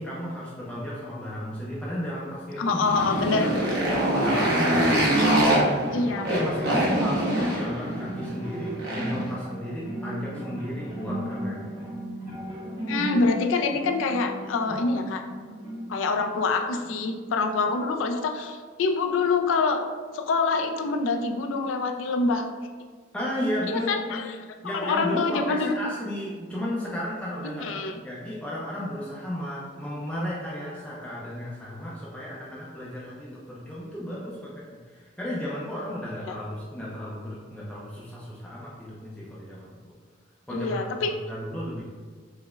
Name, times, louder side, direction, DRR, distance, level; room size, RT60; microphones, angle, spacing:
voice 1, 0.0-6.0 6.3-11.7 23.1-24.3 24.6-39.8 40.5-41.8, equal, 5° left, -8 dB, 0.4 m, -34 dB
sound 1, 2.5-17.4, right 1 dB, 25° right, 1.0 m, -37 dB
voice 2, 2.6-3.5 5.9-6.3 12.9-15.2 15.9-19.8 20.1-22.5 23.7-24.4 24.7-25.7 27.6-27.9 36.3-36.4 40.5-41.2, left 4 dB, 80° left, 5 dB, 0.3 m, -25 dB
Motorcycle, 2.7-9.3, right 1 dB, 55° right, 0.8 m, -24 dB
4.8 x 2.1 x 2.3 m, 1.5 s
head